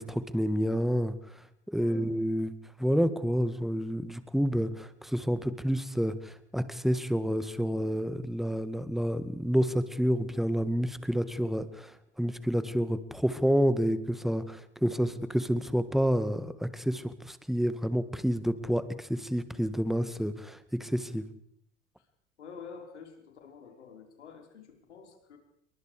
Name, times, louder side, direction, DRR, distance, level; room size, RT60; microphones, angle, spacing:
voice 1, 0.0-2.5 2.8-21.2, equal, ahead, 12 dB, 2.0 m, -29 dB
voice 2, 1.8-2.1 22.0-22.1 22.4-25.4, left 6 dB, 80° left, 3 dB, 5.5 m, -48 dB
28.5 x 23.5 x 5.1 m, 0.73 s
figure-of-eight pair, 75°, 34 cm